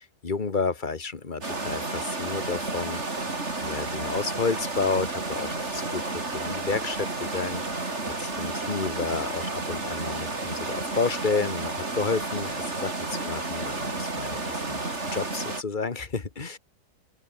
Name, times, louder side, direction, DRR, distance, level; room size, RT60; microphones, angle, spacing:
voice 1, 0.0-3.3 3.6-7.9 8.2-14.8 15.1-16.6, left 4 dB, 30° left, 1.8 m, -31 dB
sound 1, 1.4-15.6, right 3 dB, 40° right, 3.8 m, -31 dB
open air
omnidirectional pair, 1.9 m